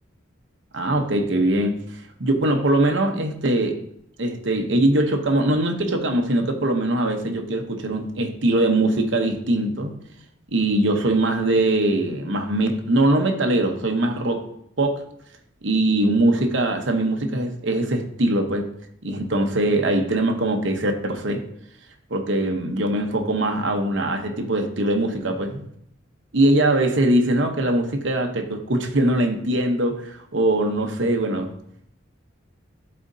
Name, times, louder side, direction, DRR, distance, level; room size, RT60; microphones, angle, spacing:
voice 1, 0.7-3.8 4.2-10.0 10.5-14.4 14.8-15.0 15.6-18.7 19.0-21.4 22.1-25.6 26.3-31.5, right 1 dB, 70° right, 4 dB, 0.9 m, -22 dB
11.0 x 4.2 x 2.7 m, 0.71 s
head